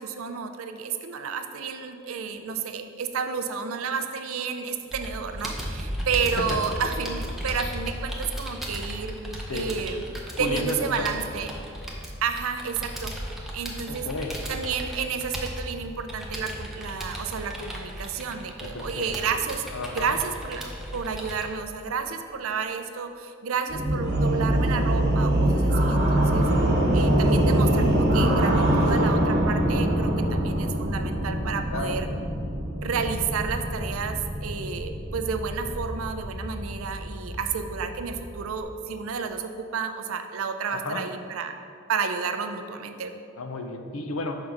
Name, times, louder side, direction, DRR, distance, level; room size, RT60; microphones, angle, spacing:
voice 1, 0.0-9.1 9.5-10.0 10.4-11.5 12.2-13.2 13.5-14.1 14.5-19.7 19.9-26.5 26.9-32.1 32.8-41.6 41.9-43.1, right 6 dB, 75° right, 7 dB, 0.5 m, -31 dB
Computer keyboard, 4.9-21.5, equal, ahead, 0.6 m, -35 dB
voice 2, 10.4-11.2 13.9-14.3 18.6-19.2 19.7-20.1 31.7-32.0 40.7-41.0 43.4-44.4, left 3 dB, 90° left, 5 dB, 0.6 m, -32 dB
sound 1, 23.7-38.6, right 1 dB, 55° right, 1.0 m, -24 dB
5.3 x 3.8 x 5.9 m, 2.4 s
head